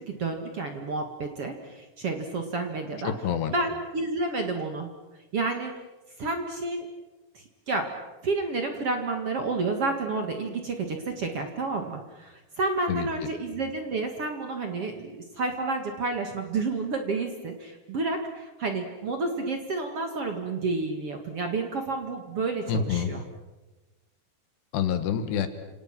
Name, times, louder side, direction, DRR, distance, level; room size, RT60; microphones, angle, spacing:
voice 1, 0.1-3.1 3.5-4.9 5.3-5.7 6.2-6.9 7.3-7.9 8.2-23.2, right 3 dB, 45° right, 5 dB, 2.2 m, -30 dB
voice 2, 3.1-3.5 12.9-13.3 22.7-23.1 24.7-25.5, left 8 dB, 80° left, 9 dB, 3.8 m, -27 dB
30.0 x 27.0 x 6.1 m, 1.1 s
omnidirectional pair, 4.7 m